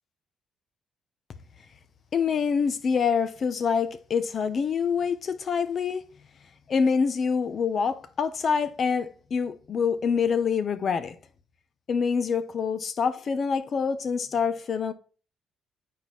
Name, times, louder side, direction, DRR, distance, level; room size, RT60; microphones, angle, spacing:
voice 1, 2.1-6.0 6.7-11.1 11.9-14.9, left 6 dB, 50° left, 0.8 m, -26 dB
8.9 x 4.7 x 4.0 m
cardioid pair, 90°, 0 cm